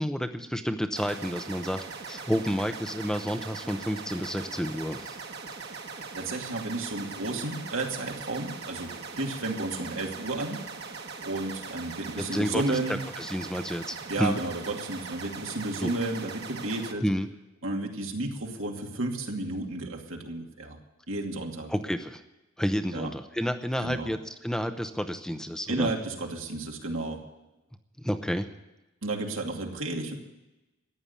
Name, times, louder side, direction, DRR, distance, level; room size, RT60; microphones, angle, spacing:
voice 1, 0.0-5.2 12.2-14.4 15.8-15.9 17.0-17.3 21.7-22.2 22.6-24.2 24.4-25.9 28.0-28.5, equal, 5° left, 7 dB, 0.7 m, -30 dB
sound 1, 1.0-16.9, right 4 dB, 55° right, 1.6 m, -41 dB
voice 2, 6.1-10.6 11.2-13.0 14.1-17.1 17.6-20.8 21.1-21.7 22.9-23.1 23.8-24.1 25.7-27.2 29.0-30.1, right 2 dB, 80° right, 1 dB, 2.5 m, -32 dB
14.5 x 9.8 x 8.5 m, 1.0 s
head